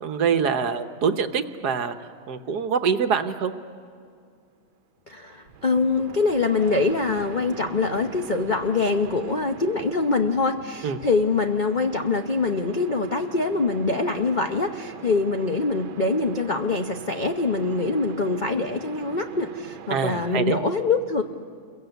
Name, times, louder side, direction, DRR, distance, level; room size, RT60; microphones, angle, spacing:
voice 1, 0.0-1.9 2.3-3.5 10.8-11.0 19.9-20.6, right 6 dB, 60° right, 8 dB, 1.4 m, -24 dB
voice 2, 5.1-21.2, left 3 dB, 60° left, 5 dB, 0.5 m, -24 dB
sound 1, 5.5-20.3, right 8 dB, 85° right, 1.6 m, -42 dB
29.5 x 22.5 x 8.1 m, 2.3 s
omnidirectional pair, 2.1 m